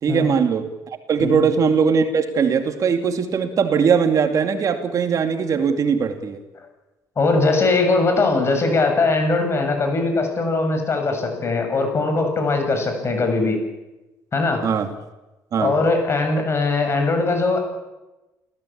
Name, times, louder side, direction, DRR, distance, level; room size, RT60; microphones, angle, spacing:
voice 1, 0.0-0.8 1.1-6.4 14.6-14.9 15.5-15.7, right 6 dB, 50° right, 6 dB, 2.5 m, -20 dB
voice 2, 7.2-13.6 14.3-14.6 15.6-17.6, left 3 dB, 35° left, 5 dB, 7.3 m, -20 dB
29.5 x 16.5 x 8.8 m, 1.1 s
cardioid pair, 95°, 7 cm